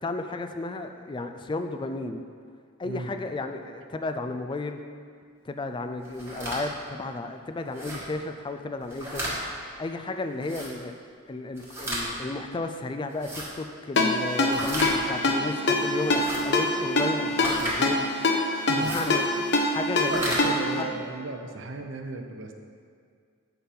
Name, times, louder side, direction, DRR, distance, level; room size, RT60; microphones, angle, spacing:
voice 1, 0.0-2.2 2.8-4.8 5.4-9.3 9.8-10.9 11.3-18.1 18.7-20.9, left 2 dB, 25° left, 7 dB, 0.3 m, -33 dB
sound 1, 6.0-6.6 7.7-8.0 8.8-9.3 10.4-10.7 11.6-12.0 13.1-13.5 14.5-14.9 16.1-16.4 17.4-17.7 18.7-19.1 19.9-20.4, right 1 dB, 15° right, 1.4 m, -33 dB
Ringtone, 14.0-20.8, left 2 dB, 60° left, 0.8 m, -25 dB
voice 2, 20.1-22.5, right 2 dB, 65° right, 5 dB, 0.6 m, -35 dB
7.6 x 5.4 x 4.3 m, 2.1 s
head